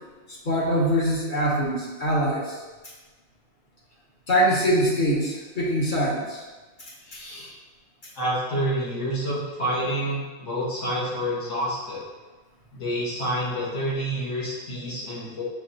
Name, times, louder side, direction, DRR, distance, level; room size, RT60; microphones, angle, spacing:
voice 1, 0.4-2.6 4.3-6.4 7.1-7.5, equal, 45° left, -4 dB, 1.0 m, -23 dB
voice 2, 8.1-12.0 12.7-15.4, right 1 dB, 70° left, -7 dB, 1.6 m, -28 dB
5.2 x 3.4 x 2.7 m, 1.2 s
omnidirectional pair, 1.3 m